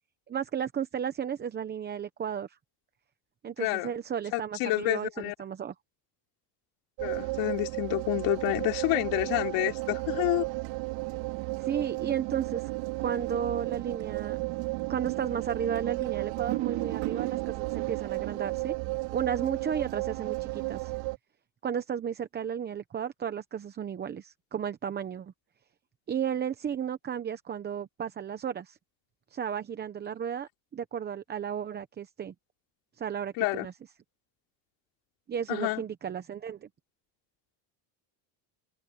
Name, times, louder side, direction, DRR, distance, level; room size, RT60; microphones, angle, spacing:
voice 1, 0.3-2.6 3.4-5.7 11.6-12.7 13.0-14.4 14.9-18.7 19.1-20.9 21.6-25.3 26.1-28.8 29.3-32.3 33.0-33.7 35.3-36.7, right 8 dB, 20° right, 0.8 m, -33 dB
voice 2, 3.6-3.9 4.3-5.3 7.0-10.4 33.4-33.7 35.5-35.8, left 21 dB, 65° left, 3.6 m, -29 dB
sound 1, 7.0-21.2, right 23 dB, 75° right, 5.0 m, -33 dB
cardioid pair, 155°, 46 cm